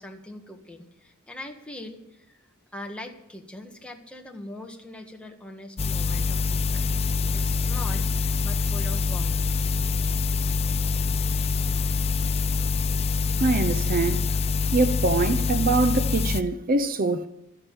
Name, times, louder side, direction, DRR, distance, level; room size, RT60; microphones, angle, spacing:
voice 1, 0.0-2.4 2.7-6.9 7.3-9.4, left 1 dB, 5° left, 1.5 m, -42 dB
sound 1, 5.8-16.4, left 4 dB, 30° left, 0.4 m, -25 dB
voice 2, 13.4-14.2 14.7-17.3, right 3 dB, 40° right, 0.6 m, -23 dB
13.0 x 9.8 x 7.2 m
head